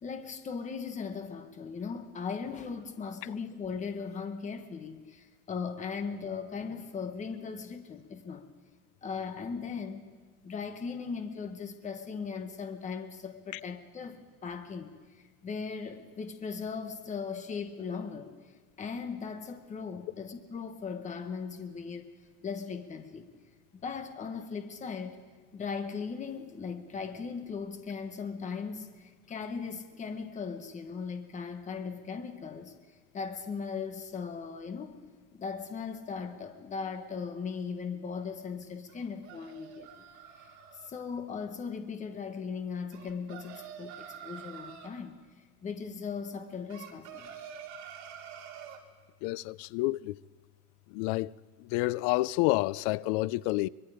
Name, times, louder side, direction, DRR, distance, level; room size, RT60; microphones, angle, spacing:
voice 1, 0.0-8.4 9.0-10.1 10.4-18.3 18.8-22.1 22.4-23.3 23.7-25.2 25.5-32.7 33.1-35.0 35.3-39.9 40.4-40.5 40.8-45.2 45.6-47.3, left 5 dB, 20° left, 1.3 m, -38 dB
sound 1, 38.9-40.9 42.9-44.9 46.7-48.8, right 8 dB, 60° right, 2.6 m, -47 dB
voice 2, 49.2-50.2 50.9-53.7, left 20 dB, 80° left, 0.5 m, -29 dB
23.5 x 22.5 x 5.0 m
cardioid pair, 160°, 33 cm